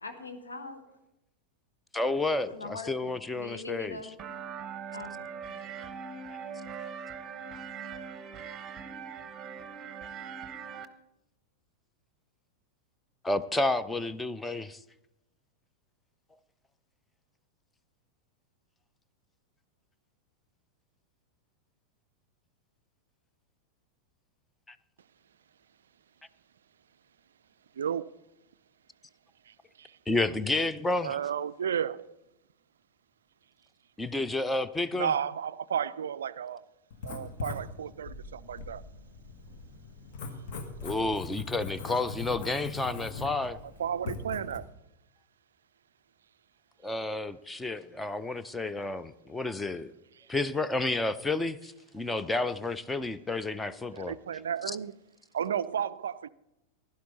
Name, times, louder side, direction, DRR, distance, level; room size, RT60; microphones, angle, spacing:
voice 1, 0.0-0.8 2.5-4.4 4.9-5.6, left 3 dB, 75° left, 1.6 m, -42 dB
voice 2, 1.9-4.1 13.2-14.8 24.7-24.8 30.1-31.2 34.0-35.2 40.8-43.6 46.8-49.9 50.3-54.2 54.6-54.8, left 2 dB, 10° left, 0.5 m, -31 dB
sound 1, 4.2-10.9, right 6 dB, 30° right, 0.8 m, -41 dB
voice 3, 27.8-28.1 29.5-30.0 31.0-32.2 34.9-36.6 37.0-38.8 43.2-43.3 43.8-44.7 50.2-50.3 53.9-54.9 55.3-56.3, right 8 dB, 65° right, 0.3 m, -33 dB
Writing, 36.9-44.6, left 3 dB, 50° left, 1.6 m, -41 dB
16.0 x 11.5 x 4.0 m
figure-of-eight pair, 90°, 0 cm